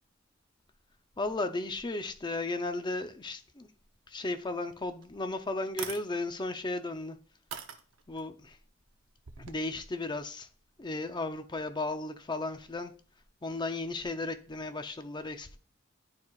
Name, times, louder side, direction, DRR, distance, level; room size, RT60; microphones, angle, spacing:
voice 1, 1.2-3.7 4.1-7.2 8.1-8.6 9.5-10.5 10.8-12.9 13.4-15.6, left 2 dB, 25° left, 0.6 m, -35 dB
sound 1, 5.0-5.1 5.7-6.0 6.8-6.9 7.5-8.2 9.2-9.6, right 8 dB, 85° right, 0.8 m, -41 dB
10.5 x 4.7 x 2.4 m
head